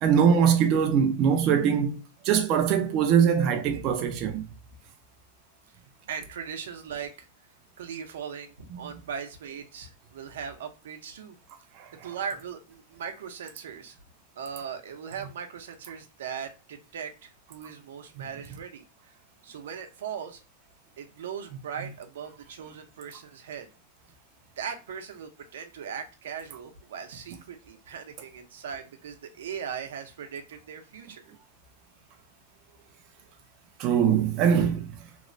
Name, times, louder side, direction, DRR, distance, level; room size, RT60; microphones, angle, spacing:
voice 1, 0.0-2.0 2.2-4.4 11.8-11.9 33.8-34.9, right 7 dB, 35° right, 0.4 m, -22 dB
voice 2, 6.1-7.3 7.8-11.4 12.0-14.0 14.4-19.2 19.4-20.4 21.0-23.7 24.6-31.2, right 7 dB, 85° right, 0.6 m, -39 dB
3.0 x 2.0 x 2.5 m
supercardioid pair, 160°, 0 cm